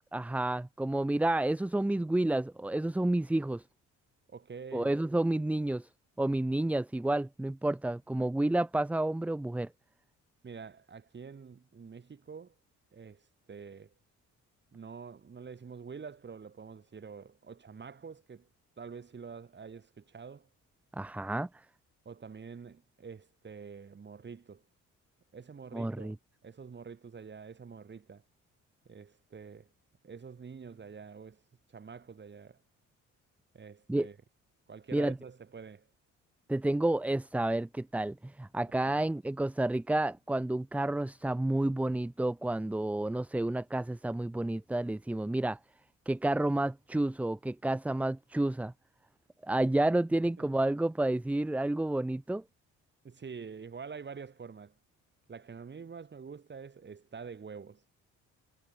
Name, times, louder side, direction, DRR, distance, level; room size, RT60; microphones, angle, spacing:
voice 1, 0.1-3.6 4.7-5.9 6.2-9.7 20.9-21.5 25.7-26.1 33.9-34.1 34.9-35.1 36.5-45.6 46.1-48.7 49.4-52.4, right 1 dB, 5° right, 0.4 m, -30 dB
voice 2, 4.3-4.9 10.4-12.5 12.9-13.9 14.7-18.5 18.8-20.5 22.1-24.6 25.3-26.2 26.4-28.2 28.9-29.7 30.0-31.4 31.7-32.6 33.5-34.2 34.7-35.9 50.4-50.6 53.0-54.7 55.3-57.8, right 5 dB, 35° right, 3.7 m, -47 dB
cardioid pair, 90°, 30 cm